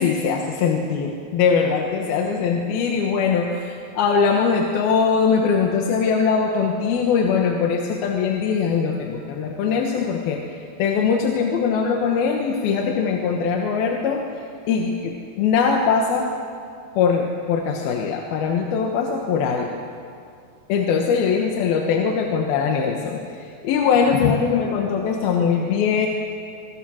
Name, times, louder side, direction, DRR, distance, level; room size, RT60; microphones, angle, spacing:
voice 1, 0.0-10.4 10.8-14.2 14.7-16.3 17.0-19.7 20.7-23.2 23.6-26.1, left 6 dB, 70° left, 2 dB, 3.0 m, -21 dB
26.0 x 24.0 x 6.3 m, 2.4 s
omnidirectional pair, 4.9 m